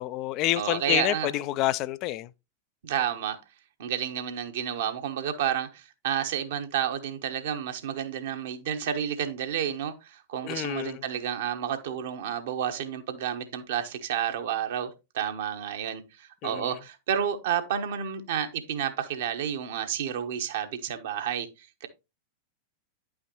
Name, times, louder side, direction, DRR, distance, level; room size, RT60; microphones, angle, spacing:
voice 1, 0.0-2.3 10.4-11.0 16.4-16.8, left 15 dB, 40° left, 0.4 m, -28 dB
voice 2, 0.6-1.3 2.8-3.4 3.8-21.9, right 9 dB, 55° right, 1.1 m, -30 dB
9.8 x 5.6 x 3.0 m
figure-of-eight pair, 90°, 0 cm